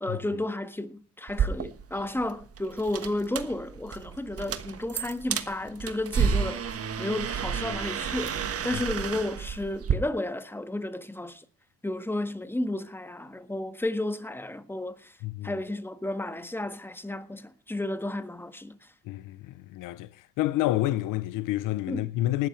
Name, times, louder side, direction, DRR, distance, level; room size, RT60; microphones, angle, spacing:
voice 1, 0.0-11.4 11.8-15.1 15.4-18.8 21.9-22.0, left 1 dB, 5° left, 1.6 m, -32 dB
sound 1, 1.3-10.0, right 7 dB, 50° right, 1.4 m, -31 dB
voice 2, 15.2-15.5 19.0-20.1 20.4-22.5, left 15 dB, 90° left, 0.8 m, -28 dB
19.0 x 12.5 x 3.2 m
cardioid pair, 85°, 31 cm